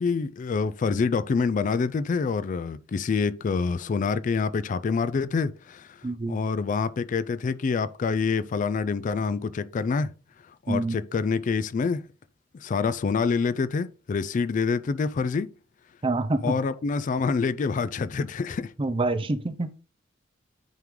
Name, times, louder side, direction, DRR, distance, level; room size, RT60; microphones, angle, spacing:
voice 1, 0.0-6.0 6.3-10.1 10.7-12.0 12.6-15.5 16.4-18.7, left 5 dB, 45° left, 0.3 m, -26 dB
voice 2, 6.0-6.4 10.7-11.0 16.0-16.5 18.8-19.7, right 2 dB, 30° right, 0.5 m, -26 dB
9.1 x 3.7 x 3.1 m
head